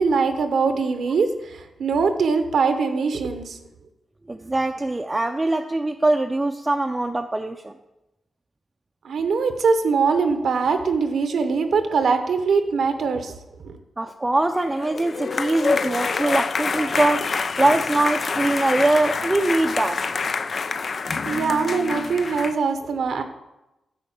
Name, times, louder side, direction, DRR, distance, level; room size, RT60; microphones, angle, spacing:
voice 1, 0.0-3.6 9.0-13.3 13.6-13.8 21.2-23.2, right 5 dB, 75° right, 8 dB, 0.8 m, -22 dB
voice 2, 4.3-7.7 14.0-17.3 17.6-20.1, right 2 dB, 20° right, 4 dB, 0.5 m, -22 dB
sound 1, 14.7-22.6, left 4 dB, 55° left, 0.4 m, -26 dB
9.0 x 4.3 x 7.2 m, 0.96 s
cardioid pair, 60°, 0 cm